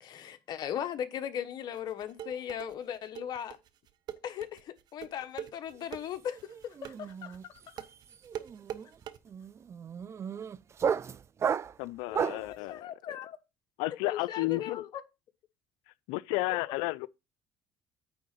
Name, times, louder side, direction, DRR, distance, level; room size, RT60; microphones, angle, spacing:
voice 1, 0.0-3.6 4.2-7.4 12.1-13.4 14.0-14.9, left 9 dB, 60° left, 1.2 m, -38 dB
sound 1, 1.7-9.2, right 10 dB, 60° right, 0.8 m, -43 dB
sound 2, 5.7-6.1 6.3-12.5, right 7 dB, 35° right, 0.4 m, -34 dB
voice 2, 11.8-13.2 13.8-14.8 16.1-17.1, left 20 dB, 85° left, 0.4 m, -32 dB
9.2 x 3.8 x 6.6 m
supercardioid pair, 90°, 8 cm